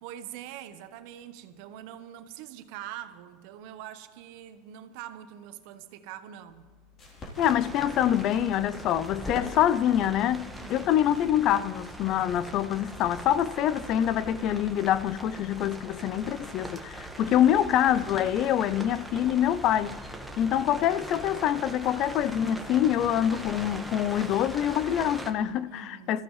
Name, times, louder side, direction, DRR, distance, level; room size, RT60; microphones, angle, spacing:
voice 1, 0.0-6.7 10.6-11.0 25.7-26.2, right 11 dB, 65° right, 1.1 m, -44 dB
sound 1, 6.5-17.7, left 2 dB, 30° left, 3.4 m, -51 dB
sound 2, 7.3-25.3, right 1 dB, ahead, 1.4 m, -41 dB
voice 2, 7.4-20.0 20.4-26.2, left 11 dB, 50° left, 0.4 m, -25 dB
25.0 x 14.5 x 3.2 m
supercardioid pair, 125°, 0 cm